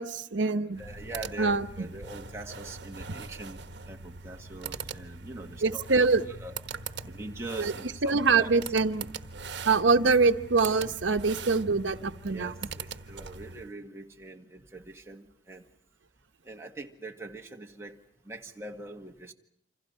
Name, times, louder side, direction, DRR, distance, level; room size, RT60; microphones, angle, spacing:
voice 1, 0.0-0.8 1.4-1.9 5.6-6.2 7.6-7.7 8.0-9.1 9.7-12.5, right 4 dB, 85° right, 8 dB, 1.0 m, -24 dB
sound 1, 0.7-13.7, right 5 dB, 70° right, 1.2 m, -42 dB
voice 2, 0.8-6.6 7.1-8.6 10.1-10.2 12.3-15.7 16.4-18.0 18.2-19.3, right 2 dB, 15° right, 1 dB, 1.8 m, -43 dB
28.5 x 26.5 x 5.6 m, 0.70 s
head